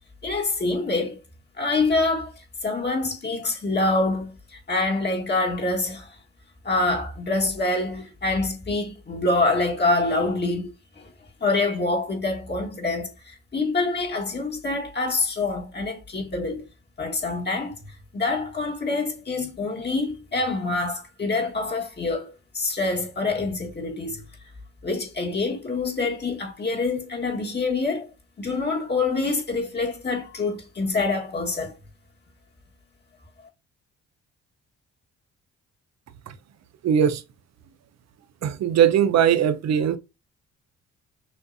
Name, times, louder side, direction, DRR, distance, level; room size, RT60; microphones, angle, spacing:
voice 1, 0.2-1.2 1.6-6.2 6.6-11.1 11.4-16.7 17.0-17.8 18.1-24.2 24.8-28.1 28.4-31.7, left 3 dB, 35° left, 1.5 m, -26 dB
voice 2, 36.8-37.2 38.4-40.0, right 9 dB, 60° right, 0.7 m, -20 dB
6.4 x 2.6 x 2.6 m
cardioid pair, 90°, 30 cm